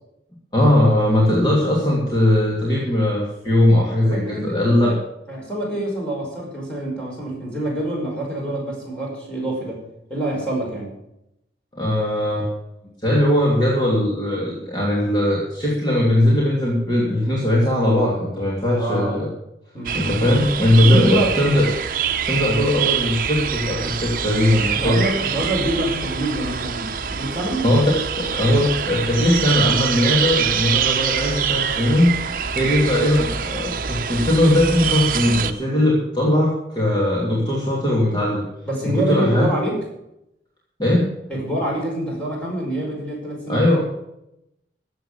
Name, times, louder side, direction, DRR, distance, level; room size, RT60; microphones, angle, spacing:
voice 1, 0.5-4.9 11.7-12.5 13.0-19.3 19.9-21.7 22.3-25.0 27.6-32.2 32.5-38.4 38.9-39.5 40.8-41.1 43.5-43.8, left 1 dB, 25° left, -4 dB, 2.8 m, -19 dB
voice 2, 4.0-5.0 5.3-9.8 10.1-10.9 18.7-19.2 19.7-20.0 20.8-21.3 24.5-27.7 35.7-35.9 38.7-39.8 41.3-43.6, right 1 dB, 5° left, -4 dB, 5.3 m, -26 dB
sound 1, 19.8-35.5, right 7 dB, 50° right, 0.8 m, -25 dB
14.0 x 7.9 x 7.4 m, 0.84 s
head